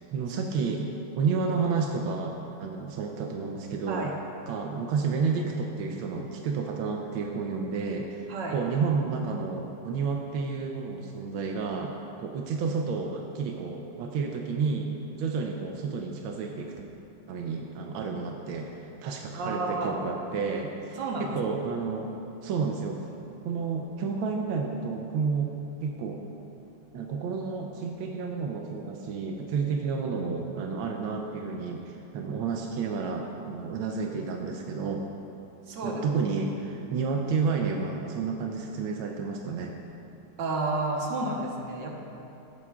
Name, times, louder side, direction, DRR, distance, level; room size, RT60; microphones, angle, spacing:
voice 1, 0.1-0.9 1.1-4.2 4.5-14.9 15.2-16.7 17.3-18.7 19.0-22.1 22.4-23.0 23.4-25.5 25.8-26.2 26.9-35.1 35.8-39.7, right 5 dB, 90° right, 2 dB, 1.5 m, -31 dB
voice 2, 19.4-20.0 21.0-21.4 35.7-36.1 40.4-42.0, right 2 dB, 70° right, -1 dB, 1.8 m, -31 dB
16.0 x 8.0 x 2.4 m, 2.9 s
omnidirectional pair, 2.1 m